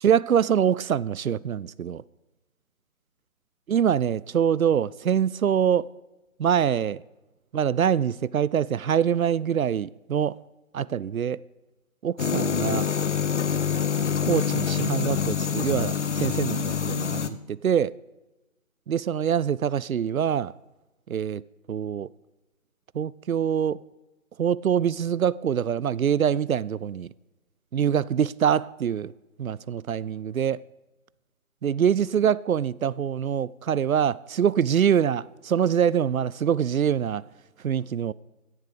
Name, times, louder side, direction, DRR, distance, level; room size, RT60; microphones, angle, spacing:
voice 1, 0.0-2.0 3.7-5.9 6.4-7.0 7.5-10.4 10.7-11.4 12.0-12.9 14.2-17.2 17.5-17.9 18.9-20.5 21.1-21.4 21.7-22.1 22.9-23.8 24.4-27.1 27.7-29.1 29.4-30.6 31.6-37.2 37.6-38.1, right 8 dB, 90° right, 0.5 m, -24 dB
sound 1, 12.2-17.3, left 7 dB, 55° left, 1.0 m, -26 dB
17.0 x 11.0 x 5.0 m
figure-of-eight pair, 150°, 41 cm